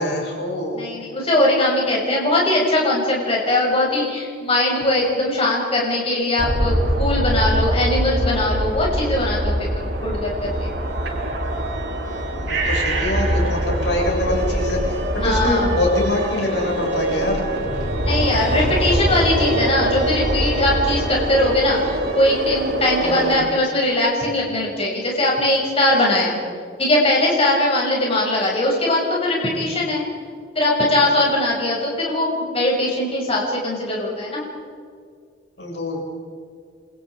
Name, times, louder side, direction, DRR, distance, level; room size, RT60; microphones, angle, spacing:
voice 1, 0.0-0.8 12.5-17.4 23.0-23.4 35.6-36.1, left 1 dB, 65° left, -1 dB, 6.9 m, -24 dB
voice 2, 0.7-10.7 15.2-15.7 18.0-26.4 26.8-30.0 30.6-34.4, left 1 dB, 30° left, -3 dB, 6.9 m, -20 dB
sound 1, 6.4-23.4, right 1 dB, 75° right, 5.3 m, -23 dB
29.0 x 26.5 x 5.0 m, 2.1 s
head